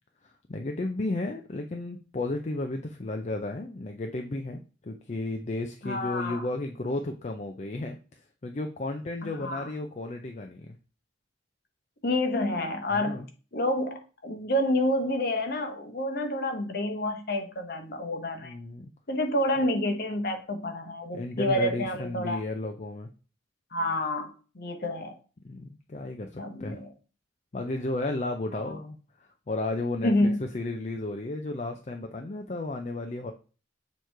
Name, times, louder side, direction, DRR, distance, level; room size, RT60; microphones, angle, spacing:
voice 1, 0.2-8.0 8.4-10.8 12.9-13.3 18.4-18.9 21.1-23.1 25.4-26.8 27.5-33.3, left 2 dB, 35° left, 4 dB, 0.5 m, -33 dB
voice 2, 5.8-6.4 9.4-9.7 12.0-13.2 13.5-18.5 19.1-22.4 23.7-25.1 26.4-26.9 28.5-28.8 30.0-30.4, left 1 dB, 50° left, 5 dB, 1.1 m, -28 dB
6.8 x 3.1 x 4.5 m, 0.36 s
head